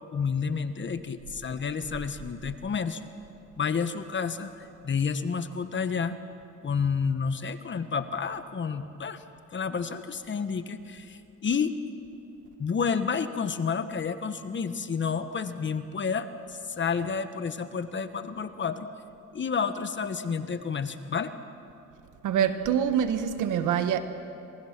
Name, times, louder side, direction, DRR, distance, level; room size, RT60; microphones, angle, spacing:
voice 1, 0.1-3.1 3.6-6.2 6.6-9.2 9.5-11.7 12.6-18.9 19.3-21.3, left 6 dB, 40° left, 10 dB, 1.3 m, -30 dB
voice 2, 22.2-24.0, right 8 dB, 85° right, 9 dB, 1.4 m, -25 dB
27.0 x 19.5 x 6.0 m, 2.7 s
cardioid pair, 90°, 30 cm